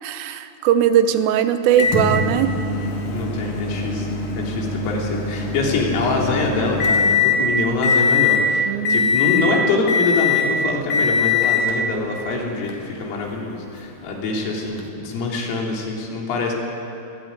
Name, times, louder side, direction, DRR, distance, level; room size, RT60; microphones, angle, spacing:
voice 1, 0.0-2.6 8.7-9.2, right 10 dB, 85° right, 10 dB, 3.5 m, -19 dB
Microwave oven, 1.8-7.4 7.8-8.4 8.8-9.5 9.9-10.5 10.9-11.7 12.7-12.8 14.8-14.9, left 5 dB, 50° left, 3.5 m, -21 dB
voice 2, 3.1-4.1 4.4-16.5, left 3 dB, 80° left, -1 dB, 5.9 m, -24 dB
23.0 x 17.5 x 9.6 m, 2.7 s
omnidirectional pair, 5.8 m